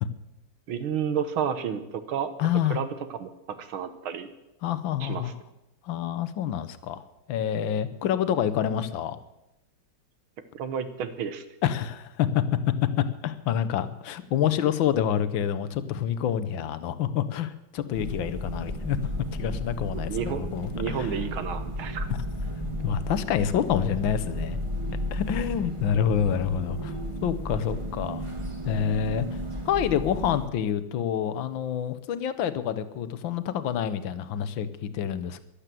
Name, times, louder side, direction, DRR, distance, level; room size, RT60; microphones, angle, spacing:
voice 1, 0.7-2.3 2.7-4.3 5.0-5.3 10.5-11.4 20.1-20.5 20.7-22.1, right 7 dB, 80° right, 10 dB, 1.9 m, -31 dB
voice 2, 2.4-2.8 4.6-5.3 5.8-9.2 11.6-12.4 13.0-19.0 19.3-21.1 22.8-24.6 25.1-26.9 27.2-28.2 28.7-29.3 29.7-35.4, left 9 dB, 70° left, 13 dB, 1.6 m, -27 dB
sound 1, 17.9-30.5, equal, 15° right, 1.6 m, -33 dB
13.5 x 11.5 x 7.5 m, 0.92 s
omnidirectional pair, 2.3 m